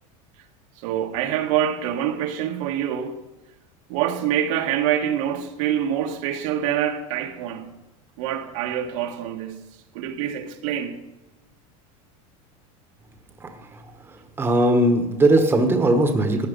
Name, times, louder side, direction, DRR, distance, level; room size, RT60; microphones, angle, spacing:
voice 1, 0.8-3.2 3.9-7.7 8.2-9.6 9.9-11.0, right 10 dB, 70° right, 1.6 m, -25 dB
voice 2, 14.4-16.5, right 1 dB, 10° right, 1.3 m, -19 dB
15.5 x 10.5 x 5.3 m
supercardioid pair, 155°, 18 cm